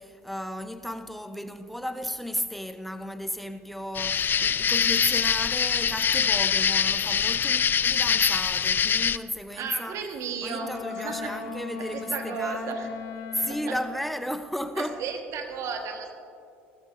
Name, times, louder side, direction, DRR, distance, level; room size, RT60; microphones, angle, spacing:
voice 1, 0.0-10.0 10.4-12.7 13.3-15.0, equal, ahead, 0.8 m, -34 dB
sound 1, 3.9-9.2, left 7 dB, 35° left, 0.4 m, -24 dB
voice 2, 9.5-11.4 11.8-12.9 13.7-13.8 14.8-16.1, right 6 dB, 55° right, 1.5 m, -34 dB
Wind instrument woodwind instrument, 10.5-14.0, left 6 dB, 60° left, 0.9 m, -38 dB
18.5 x 13.5 x 2.6 m
hypercardioid pair, 65°, 6 cm